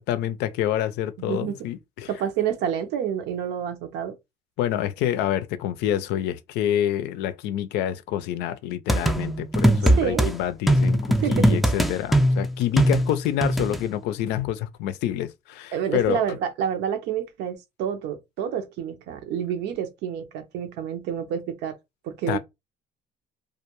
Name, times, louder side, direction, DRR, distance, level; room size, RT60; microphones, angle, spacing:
voice 1, 0.1-2.1 4.6-16.2 22.3-22.4, left 11 dB, 90° left, 0.4 m, -27 dB
voice 2, 1.2-1.7 2.1-4.1 9.9-10.3 11.2-11.6 15.7-21.7 22.0-22.4, right 8 dB, 85° right, 0.7 m, -28 dB
sound 1, 8.9-10.3 10.7-13.8, right 1 dB, ahead, 0.4 m, -20 dB
2.4 x 2.2 x 2.9 m
cardioid pair, 110°, 17 cm